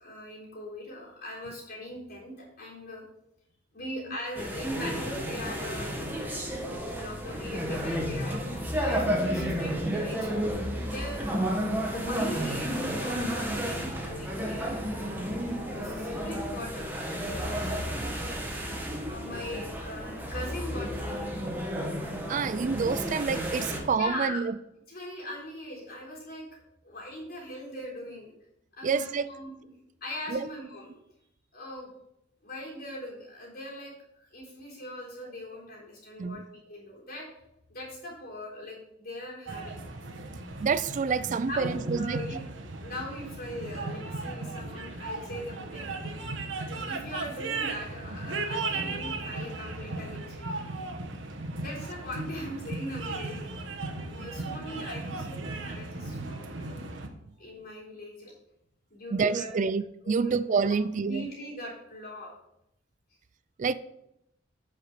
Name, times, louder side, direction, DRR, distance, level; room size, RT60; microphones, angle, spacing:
voice 1, 0.0-3.0 3.7-6.4 6.9-8.5 8.8-10.3 10.8-11.4 11.9-15.4 15.8-18.1 19.1-21.3 24.0-24.4 24.9-26.4 26.8-28.3 28.7-29.5 30.0-30.9 31.5-31.9 32.4-37.3 37.7-39.8 41.4-42.4 42.8-46.2 46.8-50.6 51.6-53.7 54.1-56.9 57.4-58.3 58.9-59.5 60.0-60.4 60.7-62.3, left 1 dB, 55° left, 3.6 m, -40 dB
sound 1, 4.3-23.8, equal, 10° right, 1.5 m, -32 dB
voice 2, 22.3-24.5 28.8-29.3 30.3-30.5 36.2-36.4 40.6-42.4 59.1-61.3 63.6-63.7, right 5 dB, 40° right, 0.3 m, -28 dB
sound 2, 39.5-57.1, right 3 dB, 85° right, 1.1 m, -36 dB
8.8 x 5.8 x 4.9 m
head